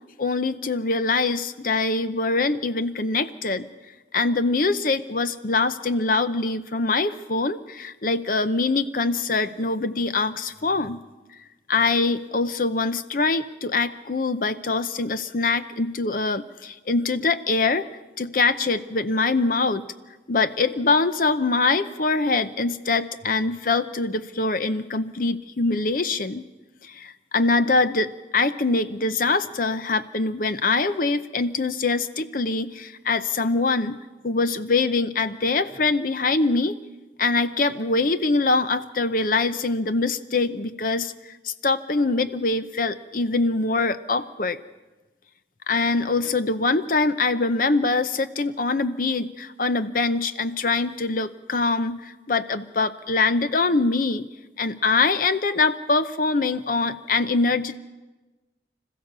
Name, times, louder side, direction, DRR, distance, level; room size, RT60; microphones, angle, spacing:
voice 1, 0.2-3.7 4.1-11.0 11.7-17.9 18.2-19.8 20.3-26.4 26.8-36.7 37.2-41.1 41.4-44.6 45.7-54.3 54.6-57.8, left 3 dB, 50° left, 11 dB, 0.7 m, -23 dB
26.0 x 15.0 x 6.8 m, 1.2 s
head